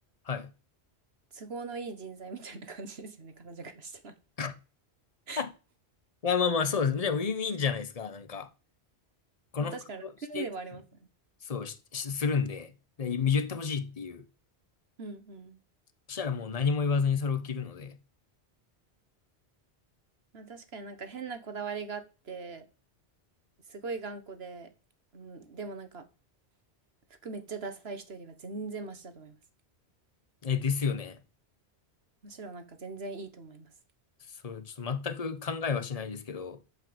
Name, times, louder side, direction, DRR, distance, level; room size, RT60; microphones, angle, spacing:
voice 1, 1.3-4.1 5.3-5.4 9.6-11.0 15.0-15.6 20.3-22.7 23.7-24.7 25.1-26.1 27.2-29.4 32.2-33.7, right 4 dB, 70° right, 1.7 m, -40 dB
voice 2, 6.2-8.5 9.5-9.8 10.3-10.5 11.4-12.7 13.0-14.2 16.1-18.0 30.4-31.2 34.4-36.6, left 6 dB, 35° left, 1.1 m, -30 dB
12.0 x 5.5 x 7.9 m
omnidirectional pair, 1.1 m